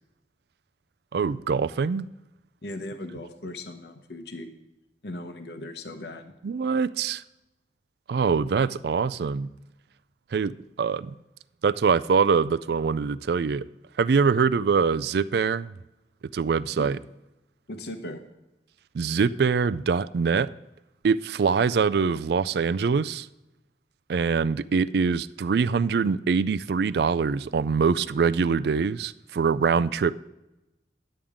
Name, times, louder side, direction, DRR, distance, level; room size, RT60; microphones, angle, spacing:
voice 1, 1.1-2.1 6.4-7.2 8.1-9.5 10.3-11.1 11.6-13.6 14.0-15.7 16.3-17.0 18.9-20.5 21.0-23.3 24.1-30.1, right 5 dB, 65° right, 16 dB, 0.4 m, -24 dB
voice 2, 2.6-4.5 5.0-6.3 16.7-16.9 17.7-18.2, left 1 dB, 70° left, 7 dB, 1.0 m, -38 dB
11.5 x 8.7 x 3.6 m, 0.96 s
head